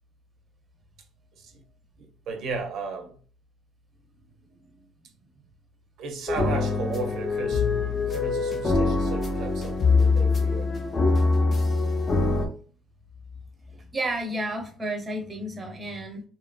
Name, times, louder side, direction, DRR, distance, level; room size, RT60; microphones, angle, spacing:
voice 1, 2.0-3.2 6.0-7.7 8.1-10.7, right 4 dB, 70° right, 0.5 m, -35 dB
sound 1, 6.3-12.5, left 3 dB, 30° left, 0.5 m, -23 dB
voice 2, 13.7-16.2, right 1 dB, 20° right, 0.6 m, -32 dB
2.7 x 2.4 x 2.3 m
cardioid pair, 135°, 0 cm